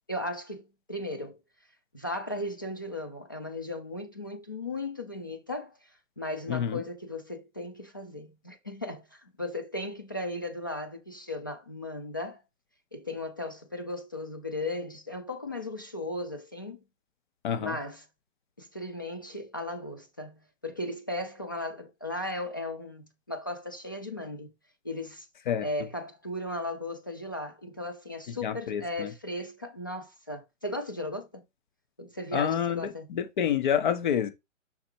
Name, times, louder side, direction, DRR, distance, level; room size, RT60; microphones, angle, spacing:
voice 1, 0.1-1.4 1.9-5.7 6.2-12.4 12.9-16.8 17.6-18.0 18.6-24.5 24.8-25.3 25.6-31.4 32.0-33.1, left 1 dB, 20° left, 0.4 m, -36 dB
voice 2, 6.5-6.8 17.4-17.8 25.5-25.7 28.4-29.1 32.3-34.3, left 9 dB, 40° left, 1.0 m, -28 dB
5.9 x 4.2 x 4.4 m
hypercardioid pair, 155°, 39 cm